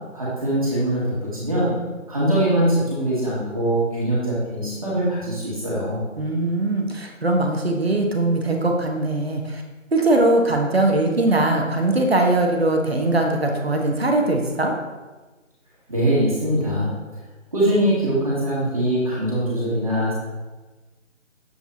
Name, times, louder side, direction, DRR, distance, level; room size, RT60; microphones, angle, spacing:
voice 1, 0.1-1.7 2.1-6.0 15.9-16.9 17.5-20.1, right 1 dB, 25° right, -8 dB, 1.9 m, -22 dB
voice 2, 6.2-9.6 9.9-14.7, right 2 dB, 50° right, 2 dB, 1.1 m, -21 dB
7.7 x 7.6 x 2.8 m, 1.2 s
figure-of-eight pair, 170°, 39 cm